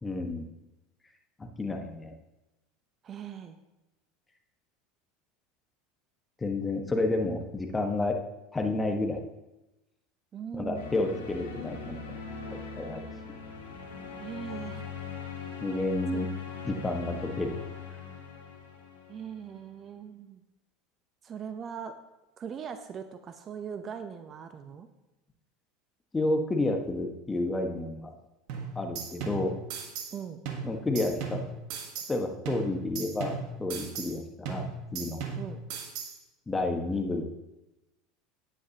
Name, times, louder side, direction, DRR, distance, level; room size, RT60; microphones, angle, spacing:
voice 1, 0.0-0.5 1.4-2.1 6.4-8.2 8.5-9.2 10.5-12.2 12.5-13.1 15.6-16.3 16.6-17.6 26.1-28.1 28.7-29.5 30.6-31.4 32.1-33.3 33.6-34.7 34.9-35.2 36.5-37.2, left 2 dB, 15° left, 4 dB, 1.4 m, -30 dB
voice 2, 3.0-3.6 10.3-10.9 14.2-14.9 16.1-16.4 19.1-20.4 21.2-21.9 22.4-24.9 30.1-30.4 35.4-35.6, right 7 dB, 40° right, 8 dB, 0.8 m, -40 dB
sound 1, 10.7-19.6, left 5 dB, 80° left, 1.8 m, -41 dB
sound 2, 28.5-30.2 30.5-32.2 32.5-34.2 34.5-36.2, right 5 dB, 60° right, 1.4 m, -37 dB
10.0 x 9.6 x 2.9 m, 0.97 s
hypercardioid pair, 80°, 0 cm